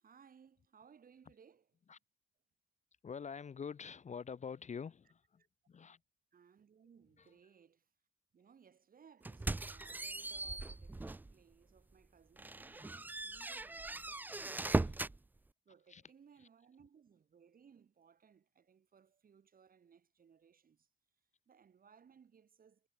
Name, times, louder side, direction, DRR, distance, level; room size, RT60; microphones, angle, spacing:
voice 1, 0.0-1.7 6.3-7.9 8.3-15.0 15.6-20.9 21.5-22.9, right 7 dB, 45° right, 2.8 m, -64 dB
voice 2, 3.0-6.0 7.2-7.3 13.4-13.5 14.6-15.0 15.9-16.0 16.4-16.5, left 6 dB, 35° left, 0.8 m, -47 dB
sound 1, 9.2-11.3 11.8-11.9 12.4-15.2, right 2 dB, 10° right, 0.3 m, -39 dB
cardioid pair, 90°, 20 cm